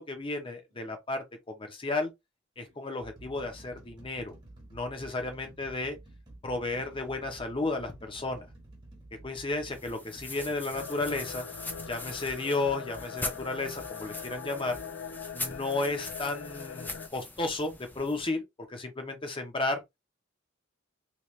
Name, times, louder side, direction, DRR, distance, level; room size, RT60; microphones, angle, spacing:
voice 1, 0.0-2.1 2.6-4.3 4.7-6.0 6.4-8.5 9.2-11.4 11.9-14.7 15.3-18.4 18.7-19.8, left 2 dB, 25° left, 0.9 m, -33 dB
sound 1, 0.7-1.0 1.8-2.0 2.6-13.9 14.7-14.9, right 1 dB, 25° right, 1.3 m, -51 dB
sound 2, 9.7-18.3, left 2 dB, 10° left, 0.6 m, -42 dB
sound 3, 10.7-17.1, left 7 dB, 70° left, 0.4 m, -42 dB
3.1 x 3.0 x 3.2 m
head